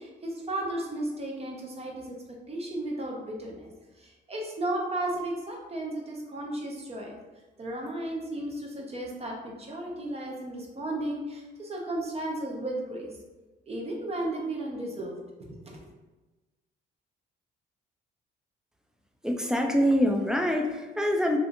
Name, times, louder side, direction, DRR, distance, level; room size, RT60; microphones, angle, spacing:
voice 1, 0.0-2.1 2.5-3.7 4.0-7.1 7.6-13.1 13.7-15.1 15.4-15.8, right 1 dB, 30° right, -1 dB, 0.7 m, -34 dB
voice 2, 19.2-21.4, equal, 5° right, 3 dB, 0.3 m, -25 dB
2.6 x 2.5 x 2.5 m, 1.2 s
cardioid pair, 90°, 20 cm